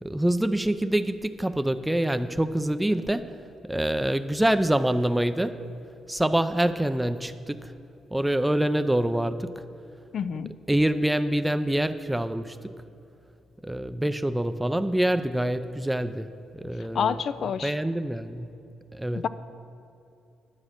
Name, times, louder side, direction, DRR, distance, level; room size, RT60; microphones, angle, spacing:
voice 1, 0.0-3.3 3.6-5.6 6.1-7.7 8.1-9.6 10.7-12.7 13.6-18.5 18.9-19.2, right 1 dB, 5° right, 11 dB, 0.5 m, -26 dB
voice 2, 10.1-10.5 16.9-17.7 19.1-19.3, left 7 dB, 60° left, 14 dB, 0.4 m, -28 dB
10.0 x 7.2 x 6.5 m, 2.7 s
cardioid pair, 90°, 0 cm